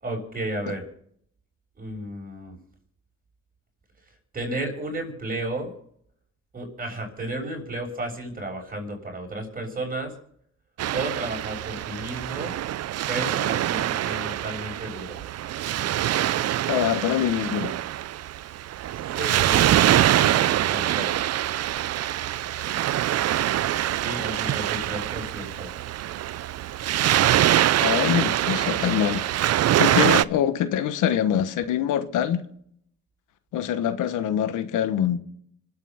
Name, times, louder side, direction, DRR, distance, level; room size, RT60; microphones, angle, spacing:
voice 1, 0.0-0.9 1.8-2.6 4.3-5.7 6.5-10.1 10.9-12.5 13.1-15.2 19.2-21.1 24.0-25.7, right 1 dB, 30° right, 7.6 m, -33 dB
Waves surf, 10.8-30.2, right 12 dB, 55° right, 0.6 m, -24 dB
voice 2, 16.7-17.7 27.8-29.3 29.8-32.4 33.5-35.2, left 10 dB, 85° left, 1.3 m, -24 dB
26.0 x 8.9 x 5.7 m
cardioid pair, 90°, 30 cm